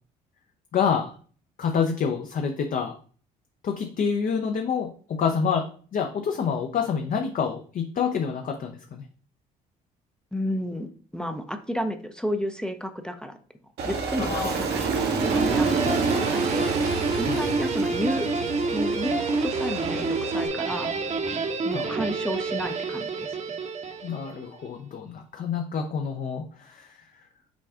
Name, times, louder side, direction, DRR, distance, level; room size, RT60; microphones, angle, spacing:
voice 1, 0.7-1.1 1.6-2.9 3.6-5.7 5.9-9.0 14.2-14.6 15.8-16.0 17.3-17.7 21.7-22.0 24.0-27.3, left 6 dB, 45° left, 3 dB, 0.6 m, -28 dB
voice 2, 10.3-13.4 13.8-16.7 17.2-18.3 18.7-20.9 21.6-23.6, equal, 5° left, 7 dB, 0.5 m, -32 dB
Aircraft, 13.8-20.5, right 4 dB, 60° right, 0.9 m, -29 dB
Guitar, 15.2-24.5, right 3 dB, 40° right, 0.9 m, -28 dB
5.9 x 2.3 x 3.6 m, 0.44 s
hypercardioid pair, 60°, 19 cm